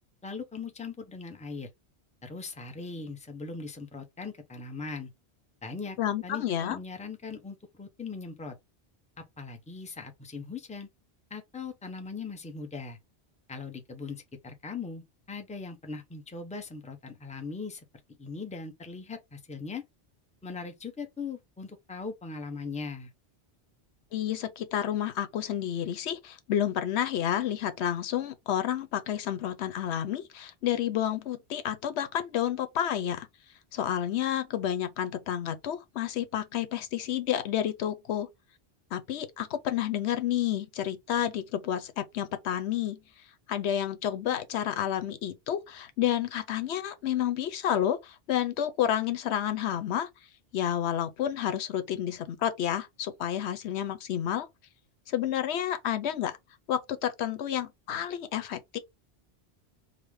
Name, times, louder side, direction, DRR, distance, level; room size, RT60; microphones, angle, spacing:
voice 1, 0.2-1.7 2.2-5.1 5.6-8.6 9.2-10.9 11.3-13.0 13.5-17.8 18.2-19.8 20.4-23.1, left 4 dB, 10° left, 0.6 m, -40 dB
voice 2, 6.0-6.8 24.1-33.3 33.7-38.3 38.9-43.0 43.5-50.1 50.5-54.5 55.1-56.4 56.7-58.8, left 10 dB, 90° left, 1.0 m, -30 dB
5.1 x 2.1 x 3.5 m
omnidirectional pair, 1.1 m